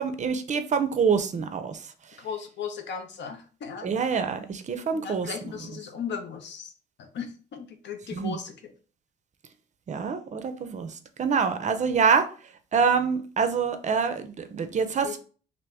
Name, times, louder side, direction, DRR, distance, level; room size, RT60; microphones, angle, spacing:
voice 1, 0.0-1.8 3.8-5.3 8.1-8.4 9.9-10.9 11.2-12.2 12.7-15.2, right 6 dB, 35° right, 9 dB, 0.5 m, -25 dB
voice 2, 2.2-3.9 4.9-6.7 7.0-8.7 15.0-15.1, left 6 dB, 65° left, 6 dB, 0.7 m, -36 dB
2.8 x 2.6 x 3.3 m, 0.39 s
cardioid pair, 90°, 20 cm